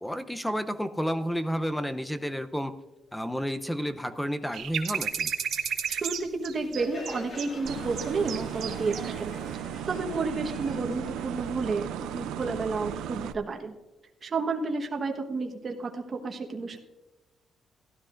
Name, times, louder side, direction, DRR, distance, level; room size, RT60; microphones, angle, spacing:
voice 1, 0.0-2.7 3.1-5.3, equal, 5° left, 10 dB, 0.7 m, -31 dB
sound 1, 4.5-9.1 9.4-9.6, right 8 dB, 70° right, 1.1 m, -32 dB
voice 2, 5.9-9.4 9.9-13.7 14.2-16.8, right 3 dB, 40° right, 2 dB, 1.3 m, -31 dB
Crowd, 6.6-12.0, left 2 dB, 55° left, 2.4 m, -45 dB
sound 2, 7.6-13.3, right 10 dB, 90° right, 0.4 m, -36 dB
16.0 x 12.5 x 2.6 m, 1.1 s
cardioid pair, 90°, 0 cm